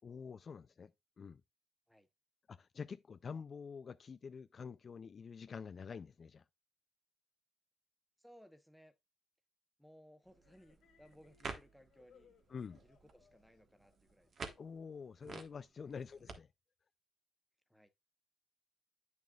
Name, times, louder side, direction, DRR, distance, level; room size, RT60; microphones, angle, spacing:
voice 1, 0.0-0.9 1.2-1.4 2.5-6.4 12.5-12.8 14.6-16.5, left 6 dB, 45° left, 0.3 m, -47 dB
voice 2, 8.2-8.9 9.8-12.3 12.8-14.5 17.7-17.9, equal, ahead, 0.9 m, -62 dB
sound 1, 10.2-16.3, right 5 dB, 50° right, 1.4 m, -52 dB
sound 2, 10.4-15.0, left 7 dB, 70° left, 2.2 m, -70 dB
8.7 x 6.4 x 2.3 m
cardioid pair, 90°, 0 cm